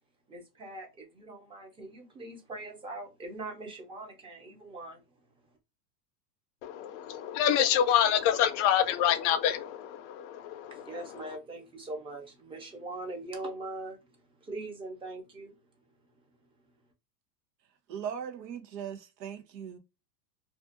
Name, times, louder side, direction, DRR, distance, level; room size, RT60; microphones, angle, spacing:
voice 1, 0.3-5.0 10.7-15.6, right 2 dB, 10° right, 0.5 m, -42 dB
voice 2, 6.6-10.9, left 10 dB, 50° left, 0.5 m, -27 dB
voice 3, 17.9-19.8, right 8 dB, 85° right, 0.9 m, -39 dB
2.5 x 2.4 x 2.4 m
supercardioid pair, 135°, 50 cm